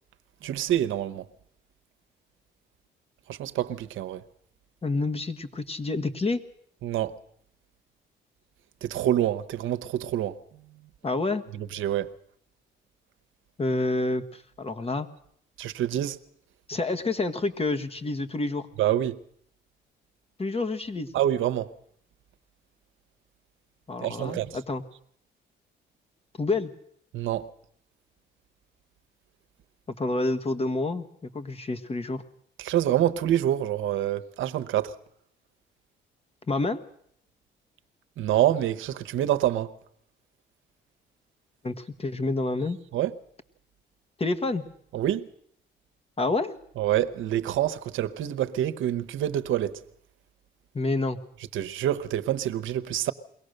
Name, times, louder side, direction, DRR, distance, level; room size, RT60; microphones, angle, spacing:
voice 1, 0.4-1.2 3.3-4.2 6.8-7.2 8.8-10.4 11.5-12.1 15.6-16.2 18.8-19.2 21.1-21.7 24.0-24.6 27.1-27.5 32.6-34.9 38.2-39.7 42.9-43.1 44.9-45.3 46.8-49.8 51.5-53.1, right 12 dB, 80° right, 0.9 m, -26 dB
voice 2, 4.8-6.4 11.0-11.4 13.6-15.1 16.7-18.7 20.4-21.1 23.9-24.8 26.4-26.7 29.9-32.2 36.5-36.8 41.6-42.8 44.2-44.6 46.2-46.6 50.7-51.2, left 2 dB, 30° left, 1.4 m, -28 dB
22.5 x 17.5 x 6.6 m
cardioid pair, 90°, 20 cm